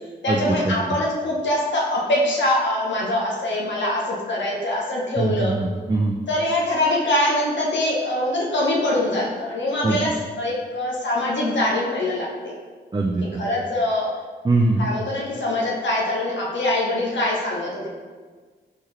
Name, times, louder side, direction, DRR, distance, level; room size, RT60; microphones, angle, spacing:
voice 1, 0.2-5.5 6.3-12.5 13.3-14.1 14.8-17.9, left 1 dB, 65° left, -4 dB, 0.9 m, -23 dB
voice 2, 5.2-6.1 9.8-10.0 12.9-13.2 14.4-14.8, right 2 dB, 20° right, 0 dB, 0.5 m, -21 dB
4.4 x 3.7 x 3.2 m, 1.4 s
cardioid pair, 60°, 20 cm